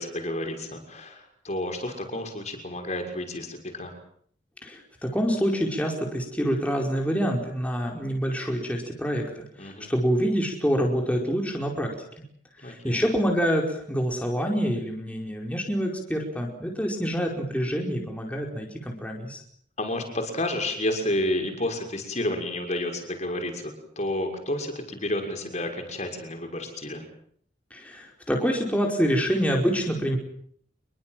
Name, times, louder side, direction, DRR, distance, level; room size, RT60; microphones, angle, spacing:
voice 1, 0.0-4.0 9.6-9.9 12.6-13.0 19.8-27.1, left 1 dB, 40° left, 4 dB, 6.3 m, -30 dB
voice 2, 4.6-11.9 12.6-19.4 27.7-30.2, equal, 10° left, 0 dB, 4.9 m, -26 dB
27.5 x 22.5 x 7.7 m, 0.64 s
head